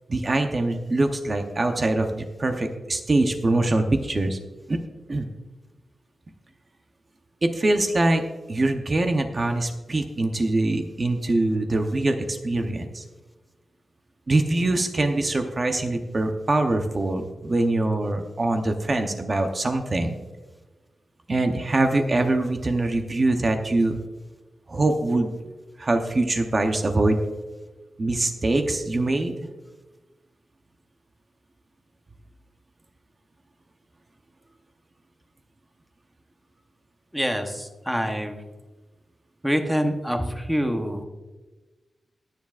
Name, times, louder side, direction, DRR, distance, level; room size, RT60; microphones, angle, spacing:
voice 1, 0.1-4.4 4.7-4.8 5.1-5.3 7.4-8.2 8.5-13.0 14.3-20.1 21.3-24.0 24.7-25.3 25.8-27.2 28.0-29.3, right 2 dB, 30° right, 5 dB, 0.8 m, -23 dB
voice 2, 37.1-38.4 39.4-41.0, equal, 5° right, 5 dB, 0.9 m, -26 dB
21.0 x 7.2 x 2.5 m, 1.2 s
wide cardioid pair, 180°, 0 cm